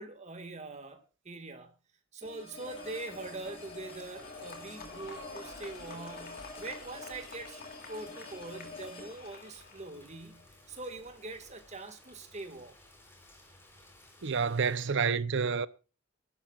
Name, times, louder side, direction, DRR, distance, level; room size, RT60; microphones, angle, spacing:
voice 1, 0.0-1.7 2.1-7.6 7.9-12.7, right 2 dB, 35° right, 2.0 m, -43 dB
sound 1, 2.2-11.2, left 3 dB, 25° left, 6.5 m, -49 dB
sound 2, 2.5-9.9, left 3 dB, 45° left, 2.9 m, -49 dB
Rain, 2.6-14.9, left 1 dB, 10° left, 4.1 m, -58 dB
voice 2, 14.2-15.7, right 5 dB, 60° right, 0.7 m, -29 dB
24.0 x 12.0 x 2.5 m
head